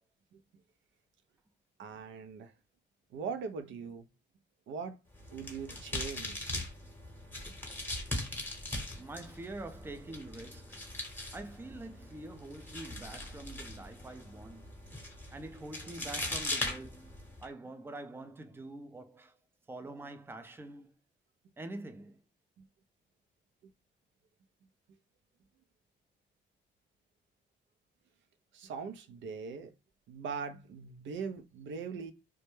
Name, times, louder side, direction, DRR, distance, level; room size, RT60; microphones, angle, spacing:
voice 1, 1.8-2.5 3.1-4.1 4.7-5.0 5.3-6.5 22.6-22.7 28.5-29.7 30.1-32.1, right 5 dB, 70° right, 0.5 m, -41 dB
sound 1, 5.1-17.5, left 2 dB, 10° left, 0.9 m, -40 dB
voice 2, 8.9-10.9 11.3-14.8 15.3-19.4 19.7-20.9 21.6-22.2, right 2 dB, 10° right, 0.4 m, -45 dB
2.2 x 2.1 x 3.0 m
cardioid pair, 90°, 20 cm